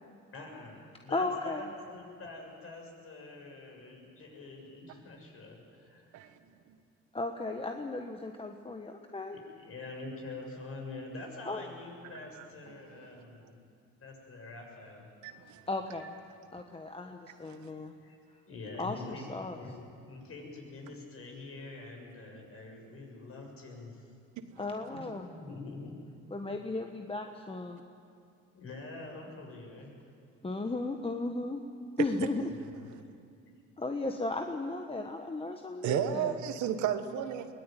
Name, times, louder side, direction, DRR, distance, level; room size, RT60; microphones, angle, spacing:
voice 1, 0.3-6.3 9.5-13.6 14.0-15.1 16.0-16.1 18.0-18.2 18.5-19.8 20.1-24.1 24.6-26.0 28.5-30.0 32.5-32.8, left 2 dB, 50° left, 1 dB, 7.0 m, -46 dB
voice 2, 1.1-1.7 7.1-9.4 11.4-11.6 15.7-16.2 16.5-17.9 18.8-19.6 24.6-25.3 26.3-27.8 30.4-31.6 32.0-32.5 33.8-36.3, left 2 dB, 20° left, 4 dB, 1.4 m, -35 dB
voice 3, 12.9-13.5 15.2-15.6 17.5-17.6 35.8-37.5, right 9 dB, 75° right, 9 dB, 1.5 m, -33 dB
22.5 x 18.5 x 9.2 m, 2.3 s
supercardioid pair, 80°, 29 cm